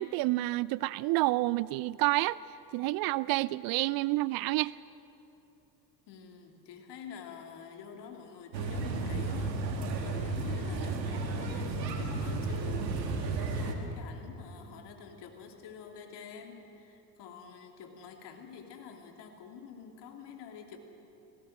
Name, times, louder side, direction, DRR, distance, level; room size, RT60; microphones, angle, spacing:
voice 1, 0.0-2.4 2.7-4.7, right 19 dB, 50° right, 20 dB, 0.4 m, -29 dB
voice 2, 6.1-20.8, left 6 dB, 55° left, 4 dB, 3.0 m, -47 dB
sound 1, 8.5-13.7, right 3 dB, 85° right, 2.1 m, -33 dB
18.0 x 17.0 x 9.0 m, 2.9 s
hypercardioid pair, 70°, 49 cm